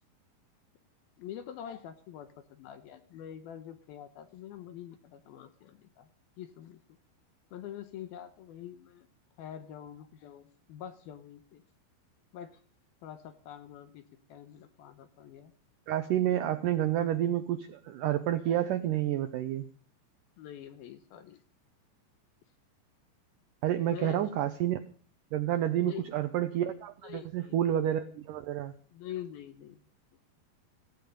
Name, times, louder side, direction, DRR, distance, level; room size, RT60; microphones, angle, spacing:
voice 1, 1.2-6.1 6.4-6.8 7.5-9.1 9.4-11.6 12.3-12.6 13.0-14.0 14.3-15.5 20.4-21.4 23.8-24.2 25.8-26.1 27.0-27.7 28.9-29.8, left 10 dB, 70° left, 10 dB, 2.5 m, -45 dB
voice 2, 15.9-19.7 23.6-24.8 25.3-28.7, right 11 dB, 85° right, 10 dB, 1.8 m, -29 dB
16.5 x 15.5 x 5.3 m, 0.42 s
omnidirectional pair, 5.0 m